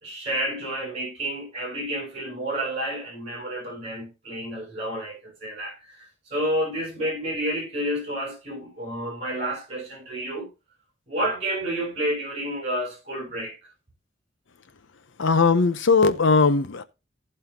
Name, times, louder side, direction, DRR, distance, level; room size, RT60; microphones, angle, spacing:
voice 1, 0.0-10.5 11.1-13.6, right 1 dB, 35° right, 6.3 m, -30 dB
voice 2, 15.2-16.8, left 4 dB, 65° left, 0.7 m, -19 dB
16.5 x 5.5 x 2.9 m
head